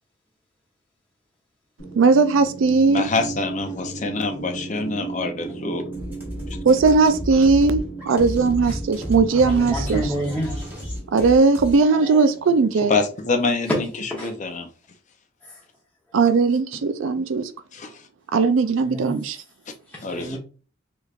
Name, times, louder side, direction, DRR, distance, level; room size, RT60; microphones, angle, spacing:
sound 1, 1.8-13.9, right 3 dB, 75° left, 1.4 m, -37 dB
voice 1, 2.0-3.1 6.6-10.1 11.1-12.9 16.1-17.5 18.3-19.4, right 4 dB, 70° right, 0.4 m, -18 dB
voice 2, 2.9-5.8 12.9-14.7 17.7-18.1 20.0-20.4, left 3 dB, 35° left, 0.5 m, -26 dB
sound 2, 5.9-11.8, equal, 10° right, 1.1 m, -31 dB
voice 3, 9.3-10.9 12.0-12.2 14.2-14.3 18.8-19.2 19.9-20.4, equal, 10° left, 0.8 m, -30 dB
3.3 x 3.1 x 2.4 m
head